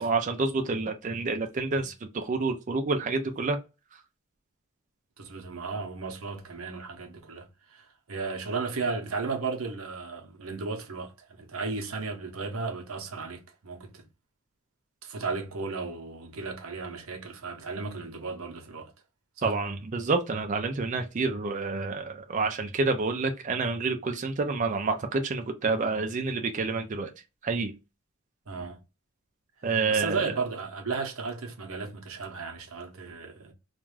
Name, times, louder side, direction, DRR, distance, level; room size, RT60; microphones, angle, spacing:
voice 1, 0.0-3.6 19.4-27.1 27.4-27.7 29.6-30.3, right 3 dB, 35° right, 0.4 m, -28 dB
voice 2, 5.2-14.0 15.0-18.9 19.4-19.6 28.5-28.8 29.6-33.5, right 4 dB, 80° right, 0.8 m, -35 dB
2.5 x 2.3 x 3.1 m
head